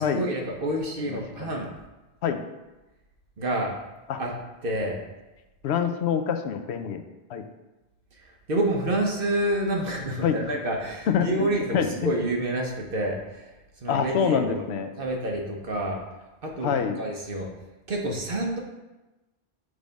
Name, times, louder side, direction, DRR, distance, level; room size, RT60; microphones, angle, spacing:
voice 1, 0.0-1.7 3.4-3.7 4.2-4.3 4.6-5.0 8.5-13.5 13.8-14.6 15.0-16.0 16.4-17.5 17.9-18.6, right 1 dB, 60° right, 0 dB, 1.2 m, -28 dB
voice 2, 1.1-1.5 2.2-2.4 4.1-4.2 5.6-7.0 7.3-7.4 10.2-10.4 11.1-12.1 13.9-14.9 16.6-17.0, left 7 dB, 85° left, 7 dB, 0.9 m, -26 dB
6.5 x 3.4 x 5.1 m, 1.1 s
omnidirectional pair, 1.1 m